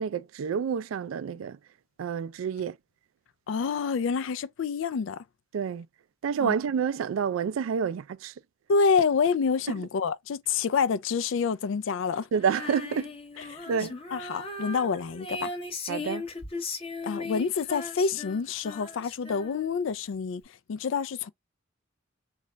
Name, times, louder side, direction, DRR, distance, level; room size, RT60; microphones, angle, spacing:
voice 1, 0.0-1.6 2.0-2.8 5.5-5.9 6.2-8.3 12.3-13.9 15.9-16.3, right 7 dB, 90° right, 0.3 m, -29 dB
voice 2, 3.5-5.2 6.4-6.5 8.7-12.3 13.5-15.5 17.0-20.4 20.7-21.3, left 5 dB, 70° left, 0.4 m, -27 dB
Female singing, 12.4-19.9, left 3 dB, 30° left, 0.7 m, -38 dB
3.9 x 2.3 x 3.2 m
head